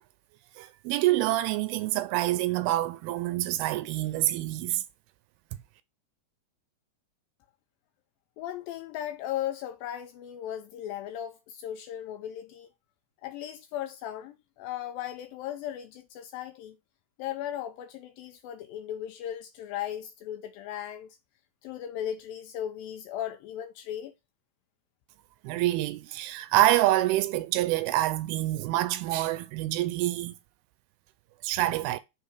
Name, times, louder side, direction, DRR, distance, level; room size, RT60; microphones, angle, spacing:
voice 1, 0.6-4.8 25.4-30.3 31.4-32.0, right 15 dB, 85° right, 2.4 m, -26 dB
voice 2, 8.4-12.7 13.2-16.8 17.2-21.2 21.6-24.1, left 11 dB, 80° left, 2.1 m, -37 dB
5.5 x 3.8 x 4.5 m
omnidirectional pair, 4.6 m